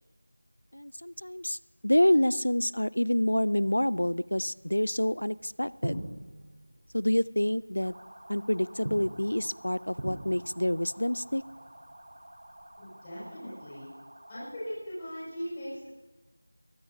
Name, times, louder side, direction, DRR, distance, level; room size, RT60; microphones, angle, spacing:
voice 1, 0.7-6.0 6.9-7.9 8.3-11.4, left 1 dB, 90° left, 20 dB, 0.4 m, -27 dB
sound 1, 3.5-12.8, right 1 dB, 80° right, 4.0 m, -44 dB
sound 2, 7.8-14.6, right 1 dB, 50° right, 3.8 m, -51 dB
voice 2, 12.8-13.9 14.3-15.9, equal, 15° left, -9 dB, 5.7 m, -39 dB
23.0 x 17.0 x 2.7 m, 1.2 s
figure-of-eight pair, 175°, 0 cm